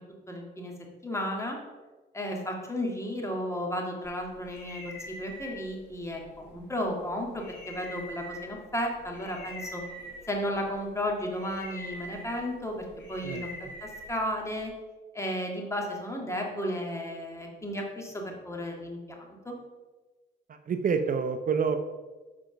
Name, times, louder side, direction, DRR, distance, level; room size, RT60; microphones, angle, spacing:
voice 1, 0.3-0.7 1.0-1.6 2.1-9.8 10.3-13.5 13.8-14.7 15.1-19.5, equal, 15° left, 0 dB, 2.0 m, -33 dB
sound 1, 4.0-14.7, left 1 dB, 60° left, 2.1 m, -45 dB
voice 2, 20.7-21.8, right 6 dB, 45° right, 7 dB, 0.6 m, -27 dB
7.3 x 5.1 x 5.7 m, 1.2 s
cardioid pair, 90°, 20 cm